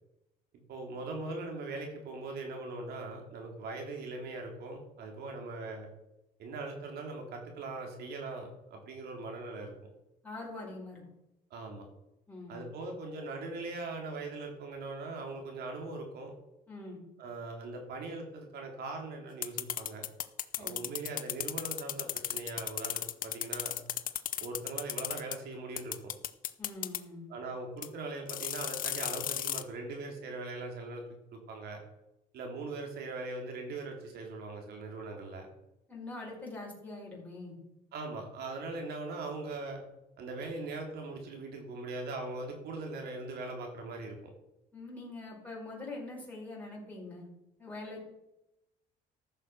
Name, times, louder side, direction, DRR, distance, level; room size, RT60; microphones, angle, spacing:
voice 1, 0.7-5.9 6.4-9.7 11.5-11.9 12.5-16.3 17.2-20.0 20.6-23.8 24.4-26.1 27.3-31.0 31.3-31.8 32.3-35.5 37.9-39.8 40.2-44.2, right 3 dB, 70° right, 2 dB, 3.4 m, -40 dB
voice 2, 10.2-11.0 12.3-12.6 16.7-17.0 20.6-20.9 26.6-27.3 35.9-37.6 44.7-47.3 47.6-48.0, left 2 dB, 10° left, -4 dB, 5.2 m, -43 dB
sound 1, 19.4-25.4 25.8-27.0 27.8-27.9 28.3-29.6, left 11 dB, 55° left, 0.8 m, -35 dB
14.0 x 6.6 x 6.1 m, 0.90 s
cardioid pair, 110°, 17 cm